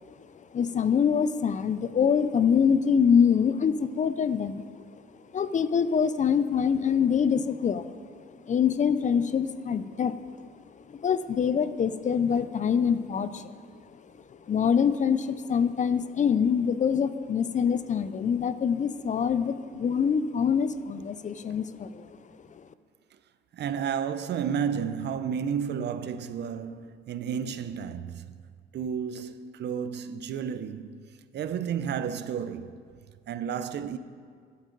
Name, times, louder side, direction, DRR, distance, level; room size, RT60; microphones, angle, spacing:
voice 1, 0.2-4.9 5.3-10.2 10.9-13.6 14.3-22.2 22.5-22.6, left 7 dB, 40° left, 0.5 m, -25 dB
voice 2, 23.5-28.4 28.7-32.9 33.3-34.0, right 7 dB, 60° right, 0.5 m, -32 dB
11.5 x 10.0 x 3.9 m
cardioid pair, 90°, 20 cm